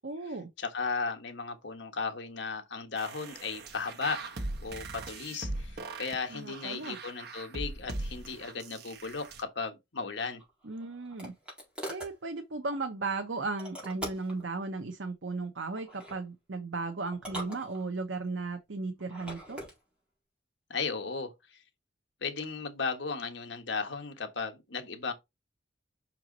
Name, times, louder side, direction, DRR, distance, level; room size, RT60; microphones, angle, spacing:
voice 1, 0.0-0.5 6.3-7.0 10.6-11.3 11.9-19.6, right 3 dB, 75° right, 0.9 m, -36 dB
voice 2, 0.6-4.2 4.6-10.4 20.7-21.3 22.2-25.1, left 4 dB, 65° left, 1.4 m, -35 dB
sound 1, 3.0-9.4, right 2 dB, 55° right, 1.2 m, -40 dB
sound 2, 10.4-12.2 13.6-14.4 15.8-16.2 17.1-18.2 19.0-19.8, right 1 dB, 5° right, 4.1 m, -42 dB
6.2 x 4.6 x 4.0 m
head